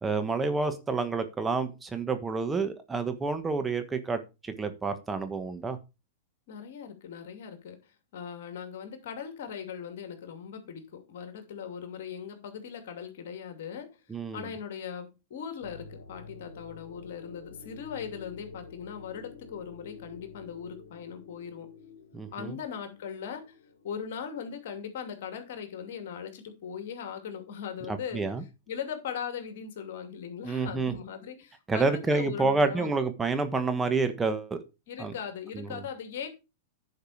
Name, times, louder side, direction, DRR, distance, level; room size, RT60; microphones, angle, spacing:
voice 1, 0.0-5.8 14.1-14.4 22.1-22.6 27.9-28.4 30.4-30.9 31.7-34.6 35.0-35.1 35.5-35.8, right 4 dB, 15° right, 1.4 m, -29 dB
voice 2, 6.5-13.9 14.3-21.7 22.3-23.5 23.8-28.2 28.7-32.9 34.9-36.3, left 7 dB, 65° left, 2.6 m, -39 dB
sound 1, 15.6-24.8, left 4 dB, 80° left, 1.8 m, -49 dB
10.5 x 5.3 x 5.0 m
hypercardioid pair, 110°, 0 cm